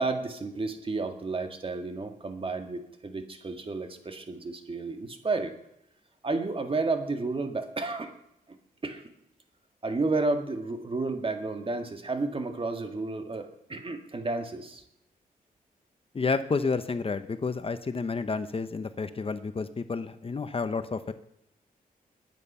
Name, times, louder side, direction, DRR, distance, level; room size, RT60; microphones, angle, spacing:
voice 1, 0.0-5.6 6.2-8.1 8.8-9.0 9.8-14.8, right 3 dB, 35° right, 6 dB, 1.9 m, -31 dB
voice 2, 16.1-21.1, left 4 dB, 35° left, 11 dB, 0.9 m, -30 dB
20.5 x 9.2 x 5.6 m, 0.79 s
cardioid pair, 95°, 16 cm